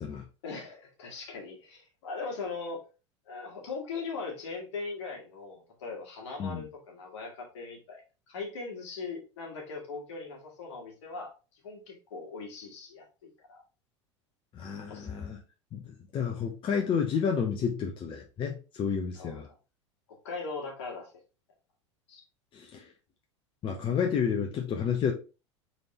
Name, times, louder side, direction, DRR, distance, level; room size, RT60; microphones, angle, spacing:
voice 1, 0.4-2.8 3.2-8.0 8.3-13.6 14.9-15.2 19.1-19.4 20.2-21.1 22.1-22.2, left 4 dB, 65° left, 1.7 m, -40 dB
voice 2, 14.5-15.4 15.7-19.5 22.5-22.9 23.6-25.1, left 7 dB, 35° left, 0.8 m, -30 dB
3.9 x 3.4 x 2.9 m
hypercardioid pair, 85°, 16 cm